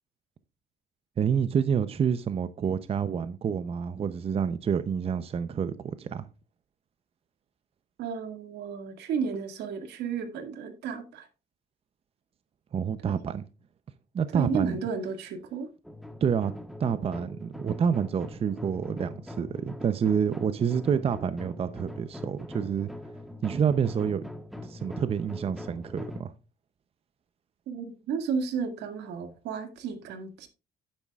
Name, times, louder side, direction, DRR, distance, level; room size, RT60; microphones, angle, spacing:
voice 1, 1.2-6.2 12.7-13.4 14.1-14.8 16.2-16.5 16.8-22.9 23.4-24.2 24.6-26.3, right 7 dB, 35° right, 0.7 m, -28 dB
voice 2, 8.0-11.3 13.1-13.2 14.3-15.7 27.7-30.5, right 6 dB, 80° right, 2.1 m, -33 dB
sound 1, 15.8-26.2, left 1 dB, ahead, 1.2 m, -42 dB
10.5 x 9.7 x 2.4 m
cardioid pair, 110°, 17 cm